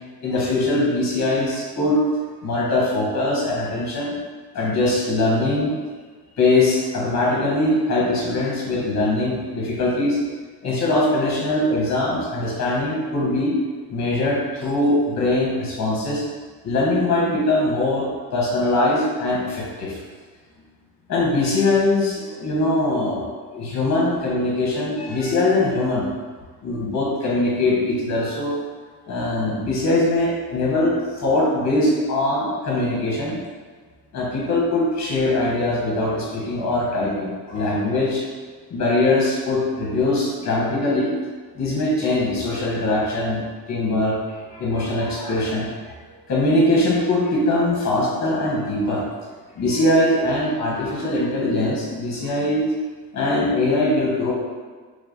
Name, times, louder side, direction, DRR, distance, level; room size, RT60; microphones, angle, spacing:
voice 1, 0.2-2.0 2.4-4.1 4.5-5.7 6.4-10.2 10.6-13.6 13.9-16.2 16.6-20.0 21.1-26.1 26.6-28.6 29.1-33.4 34.1-38.2 38.7-41.1 41.6-43.4 43.7-49.0 49.5-52.7 53.1-54.3, left 2 dB, 35° left, -5 dB, 1.5 m, -22 dB
3.3 x 3.0 x 4.0 m, 1.5 s
supercardioid pair, 90°, 45 cm